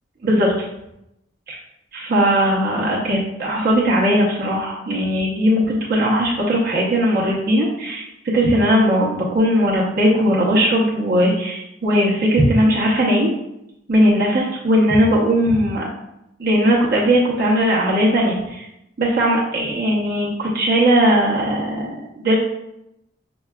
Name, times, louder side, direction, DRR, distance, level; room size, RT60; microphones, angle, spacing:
voice 1, 0.2-0.5 1.5-1.6 1.9-13.3 13.9-15.9 16.4-18.6 19.0-21.9 22.2-22.3, equal, 50° right, -5 dB, 0.6 m, -18 dB
5.4 x 2.2 x 2.2 m, 0.85 s
head